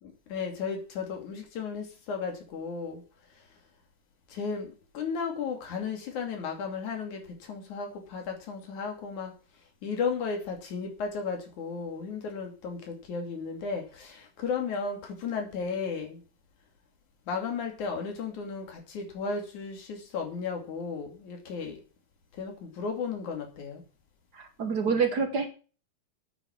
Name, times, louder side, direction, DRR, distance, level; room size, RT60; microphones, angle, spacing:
voice 1, 0.0-3.0 4.3-9.3 9.8-16.2 17.3-21.8 22.4-23.8, left 5 dB, 60° left, 3 dB, 3.9 m, -34 dB
voice 2, 24.3-25.5, right 5 dB, 80° right, 7 dB, 0.8 m, -27 dB
9.2 x 9.1 x 7.2 m, 0.37 s
omnidirectional pair, 3.8 m